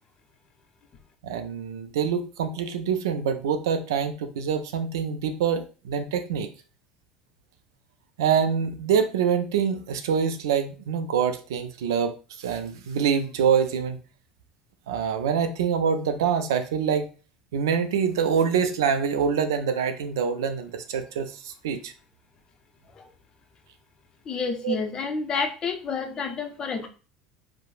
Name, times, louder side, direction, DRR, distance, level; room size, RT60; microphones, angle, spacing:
voice 1, 1.2-6.5 8.2-14.0 14.9-17.1 17.5-21.9 24.6-24.8, right 7 dB, 80° right, 8 dB, 0.3 m, -25 dB
voice 2, 24.3-26.9, left 5 dB, 40° left, 5 dB, 0.5 m, -29 dB
3.0 x 2.0 x 2.3 m, 0.35 s
hypercardioid pair, 80°, 2 cm